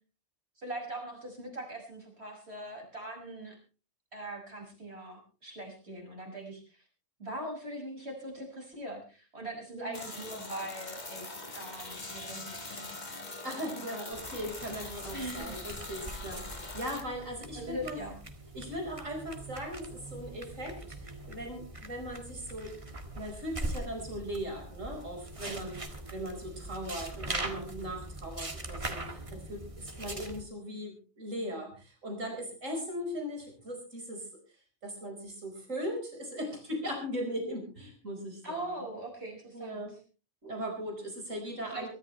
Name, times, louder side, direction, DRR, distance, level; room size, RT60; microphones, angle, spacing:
voice 1, 0.6-3.6 4.1-6.9 7.2-12.9 13.5-13.6 15.1-15.6 17.5-18.2 38.4-40.0 41.7-41.9, right 1 dB, 55° right, 1 dB, 6.6 m, -41 dB
voice 2, 9.7-10.1 13.4-18.0 18.5-22.8 23.2-34.3 34.8-38.8 39.5-39.9 40.4-41.9, equal, 85° right, 3 dB, 5.3 m, -39 dB
sound 1, 9.9-17.0, left 2 dB, 35° left, 2.1 m, -42 dB
sound 2, 14.1-30.4, right 2 dB, 25° right, 1.8 m, -42 dB
23.5 x 13.5 x 3.2 m, 0.35 s
omnidirectional pair, 1.3 m